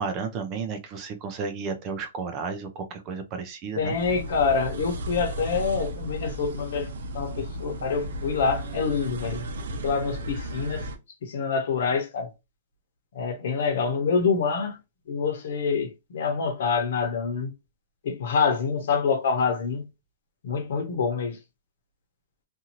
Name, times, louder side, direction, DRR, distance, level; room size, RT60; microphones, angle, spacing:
voice 1, 0.0-4.0, right 5 dB, 25° right, 0.5 m, -32 dB
sound 1, 3.7-11.0, right 1 dB, 75° right, 0.6 m, -35 dB
voice 2, 3.8-10.9 11.2-12.3 13.1-14.8 15.1-17.5 18.0-19.9 20.4-21.4, left 5 dB, 65° left, 0.9 m, -26 dB
2.7 x 2.5 x 2.8 m
hypercardioid pair, 165°, 0 cm